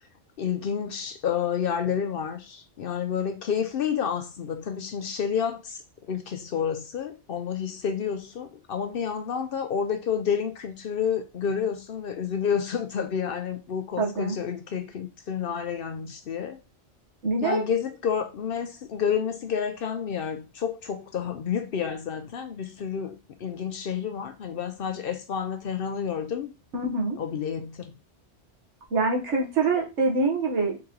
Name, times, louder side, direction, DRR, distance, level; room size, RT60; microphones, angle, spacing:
voice 1, 0.4-5.8 6.1-16.6 17.4-26.5 27.2-27.9, left 7 dB, 60° left, 0.7 m, -29 dB
voice 2, 14.0-14.4 17.2-17.6 26.7-27.2 28.9-30.9, right 3 dB, 75° right, 1.4 m, -25 dB
3.9 x 2.9 x 3.7 m
omnidirectional pair, 1.2 m